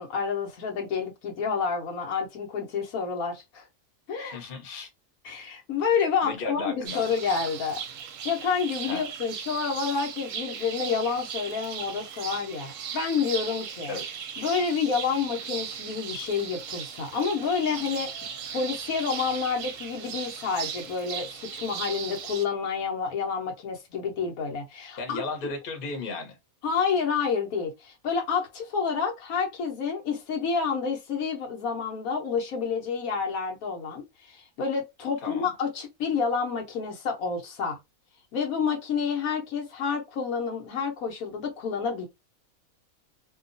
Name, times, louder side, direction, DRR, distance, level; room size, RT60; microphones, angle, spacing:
voice 1, 0.0-3.6 4.1-4.4 5.2-7.8 8.2-13.9 14.4-18.1 18.5-25.2 26.6-37.8 38.3-42.1, left 5 dB, 75° left, 1.2 m, -29 dB
voice 2, 4.2-4.9 6.2-7.0 8.8-9.0 13.9-14.2 25.0-26.4 35.2-35.5, left 3 dB, 45° left, 0.9 m, -35 dB
sound 1, 6.9-22.5, right 7 dB, 70° right, 0.9 m, -37 dB
2.7 x 2.3 x 2.6 m
omnidirectional pair, 1.5 m